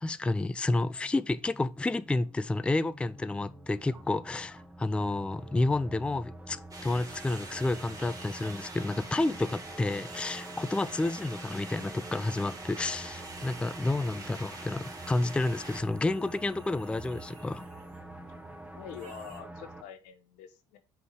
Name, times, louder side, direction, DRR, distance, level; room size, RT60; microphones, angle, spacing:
voice 1, 0.0-17.6, left 2 dB, 10° left, 0.3 m, -30 dB
sound 1, 0.9-19.8, right 1 dB, 10° right, 0.9 m, -46 dB
sound 2, 6.7-15.8, right 3 dB, 30° right, 1.4 m, -45 dB
sound 3, 7.0-9.6 9.9-12.8 13.2-18.0 18.9-19.4, right 5 dB, 70° right, 1.6 m, -56 dB
voice 2, 13.9-14.3 18.7-20.8, left 7 dB, 85° left, 1.0 m, -46 dB
6.0 x 3.5 x 4.7 m
supercardioid pair, 75°, 12 cm